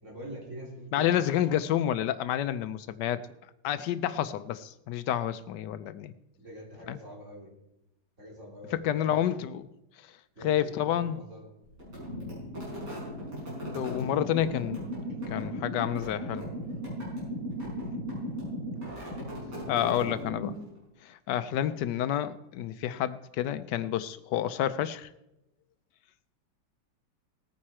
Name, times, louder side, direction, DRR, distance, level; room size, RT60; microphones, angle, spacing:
voice 1, 0.0-1.1 6.4-7.5 8.2-9.2 10.4-11.5 17.7-17.9, equal, 40° right, -3 dB, 3.6 m, -45 dB
voice 2, 0.9-3.2 3.6-6.1 6.9-7.0 8.7-9.7 10.4-11.2 13.7-14.9 15.3-16.5 19.7-20.6 21.0-25.1, left 11 dB, 75° left, 13 dB, 1.2 m, -29 dB
sound 1, 11.8-20.8, equal, 70° right, 6.4 m, -37 dB
18.5 x 9.4 x 4.3 m, 0.90 s
omnidirectional pair, 1.9 m